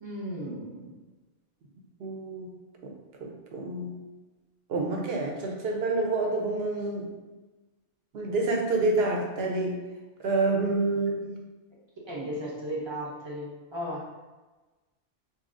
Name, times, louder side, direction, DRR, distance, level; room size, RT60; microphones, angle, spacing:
voice 1, 0.0-0.9 12.0-14.1, equal, 30° right, -4 dB, 0.6 m, -35 dB
voice 2, 2.0-2.5 2.8-2.9 3.2-4.0 4.7-7.1 8.1-9.8 10.2-11.3, right 2 dB, 65° right, 1 dB, 0.8 m, -28 dB
4.1 x 2.7 x 2.5 m, 1.2 s
omnidirectional pair, 1.2 m